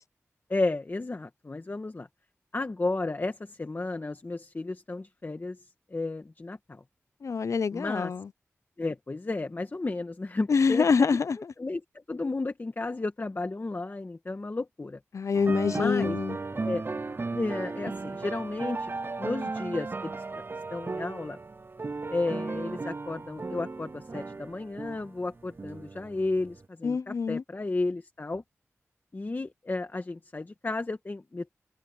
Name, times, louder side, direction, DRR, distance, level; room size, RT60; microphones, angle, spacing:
voice 1, 0.5-2.1 2.5-5.6 5.9-6.8 7.7-8.1 8.8-10.9 11.6-11.8 12.1-15.0 15.7-16.2 16.5-16.8 17.3-18.9 19.2-20.2 20.7-21.4 22.1-28.4 29.1-31.5, left 2 dB, 40° left, 1.7 m, -33 dB
voice 2, 7.2-8.3 10.5-11.4 15.1-16.4 26.8-27.4, left 5 dB, 70° left, 0.6 m, -25 dB
sound 1, 15.3-26.7, right 3 dB, 45° right, 0.7 m, -36 dB
cardioid pair, 60°, 5 cm